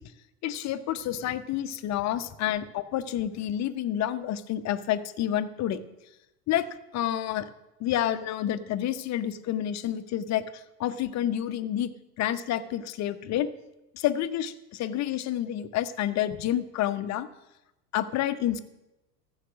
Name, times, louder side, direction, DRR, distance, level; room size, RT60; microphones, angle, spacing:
voice 1, 0.4-5.8 6.5-6.6 6.9-7.5 7.8-10.4 10.8-11.9 12.2-13.5 13.9-17.3 17.9-18.6, left 11 dB, 35° left, 11 dB, 0.9 m, -29 dB
14.5 x 7.4 x 6.2 m, 0.95 s
figure-of-eight pair, 80°, 49 cm